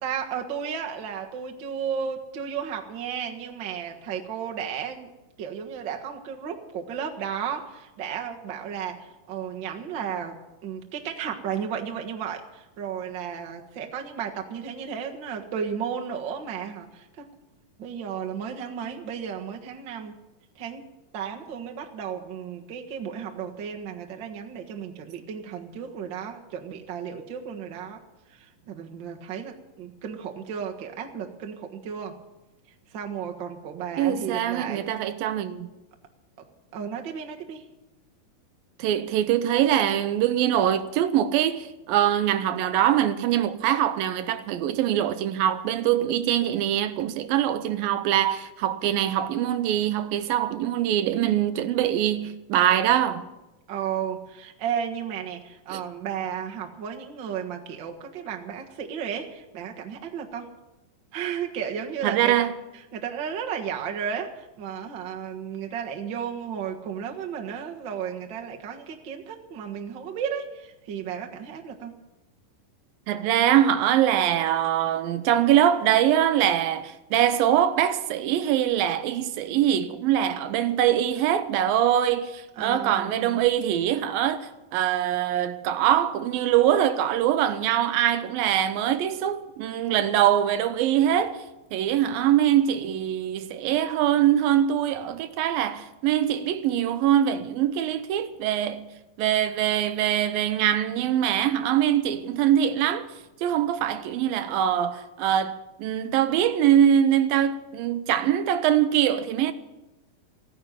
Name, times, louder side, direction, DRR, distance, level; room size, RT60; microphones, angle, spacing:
voice 1, 0.0-5.1 5.4-10.4 10.6-17.3 17.8-20.2 20.5-20.8 21.1-28.0 28.3-32.2 32.9-35.0 36.7-37.6 53.7-60.5 61.1-62.4 62.9-71.9 82.6-83.4, right 7 dB, 45° right, 1.6 m, -34 dB
voice 2, 34.0-35.7 38.8-53.3 55.7-55.8 62.0-62.6 73.1-91.4 91.7-98.9 99.2-103.1 103.4-109.5, right 11 dB, 90° right, 2.6 m, -23 dB
15.5 x 10.0 x 9.0 m
omnidirectional pair, 4.1 m